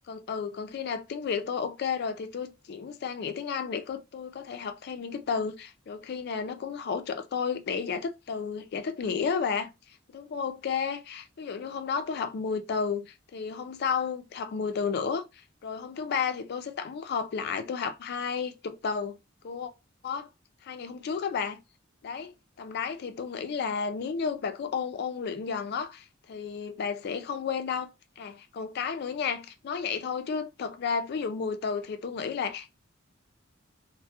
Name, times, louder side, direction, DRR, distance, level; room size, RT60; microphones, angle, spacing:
voice 1, 0.1-9.7 10.1-15.3 15.6-19.2 19.4-19.7 20.0-20.3 20.6-21.6 22.0-27.9 28.2-32.8, left 6 dB, 55° left, 0.3 m, -32 dB
2.2 x 2.0 x 2.7 m
head